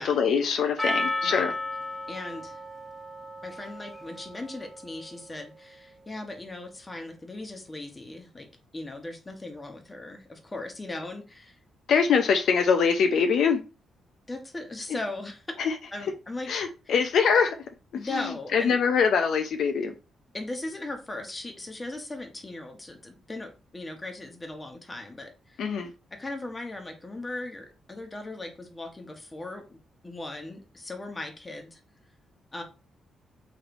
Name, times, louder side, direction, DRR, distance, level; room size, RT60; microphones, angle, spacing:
voice 1, 0.0-1.5 11.9-13.6 15.6-15.7 16.5-17.6 18.1-19.9 25.6-25.9, left 6 dB, 70° left, 0.4 m, -23 dB
Percussion, 0.8-5.4, left 2 dB, ahead, 0.5 m, -34 dB
voice 2, 2.1-2.6 3.4-8.5 8.7-11.6 14.3-15.5 15.9-16.5 16.9-17.0 17.9-18.8 20.3-25.7 26.1-29.8 30.0-31.8 32.5-32.6, left 2 dB, 20° left, 0.8 m, -38 dB
3.1 x 3.1 x 2.5 m
cardioid pair, 95°, 0 cm